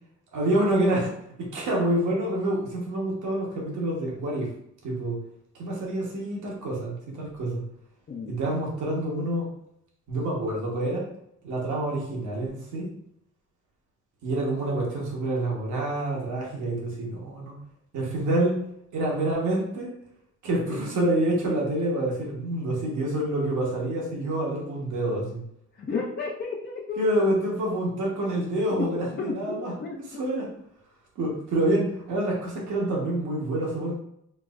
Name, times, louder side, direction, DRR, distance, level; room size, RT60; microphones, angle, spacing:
voice 1, 0.3-1.1 1.4-4.5 4.8-5.2 5.6-7.6 8.3-9.5 10.1-11.1 11.4-12.9 14.2-17.5 17.9-18.6 18.9-19.9 20.4-25.4 27.0-30.5 31.2-33.9, right 1 dB, 75° right, -3 dB, 1.2 m, -27 dB
voice 2, 25.8-27.0 28.9-30.0, left 4 dB, 35° left, -2 dB, 0.6 m, -33 dB
4.6 x 2.1 x 2.4 m, 0.75 s
cardioid pair, 90°, 30 cm